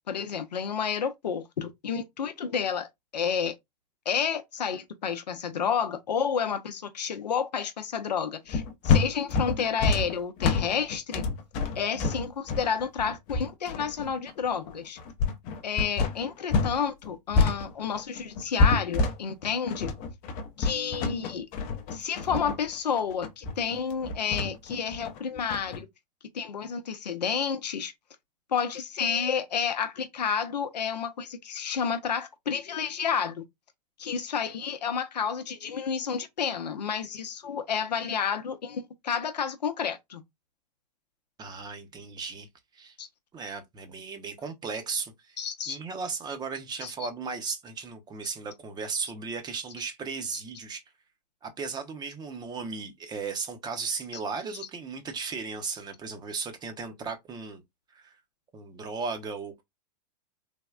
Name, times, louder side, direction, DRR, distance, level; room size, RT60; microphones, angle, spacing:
voice 1, 0.1-3.5 4.1-11.2 11.8-15.0 15.6-19.9 20.6-21.4 21.9-25.9 26.3-27.9 28.5-33.4 34.0-40.2 43.0-43.1 45.4-45.8 46.8-46.9, left 7 dB, 85° left, 0.6 m, -30 dB
sound 1, 8.5-16.8 17.0-25.8, left 4 dB, 40° left, 0.6 m, -27 dB
voice 2, 41.4-42.5 42.7-43.0 43.3-45.4 45.7-50.8 51.4-57.6 57.9-58.2 58.5-59.6, right 5 dB, 20° right, 0.6 m, -36 dB
3.4 x 2.1 x 2.3 m
hypercardioid pair, 110°, 21 cm